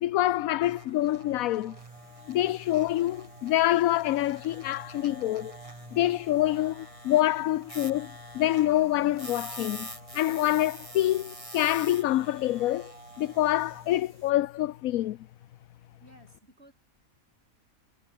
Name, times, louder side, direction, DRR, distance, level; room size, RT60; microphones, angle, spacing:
voice 1, 0.0-1.8 2.3-5.6 5.9-9.9 10.1-15.2, left 14 dB, 75° left, 1.1 m, -26 dB
sound 1, 0.6-14.0, right 1 dB, 20° right, 5.4 m, -46 dB
sound 2, 1.8-14.3, right 2 dB, 85° right, 7.9 m, -60 dB
voice 2, 16.0-16.7, right 1 dB, 45° right, 6.9 m, -56 dB
omnidirectional pair, 1.5 m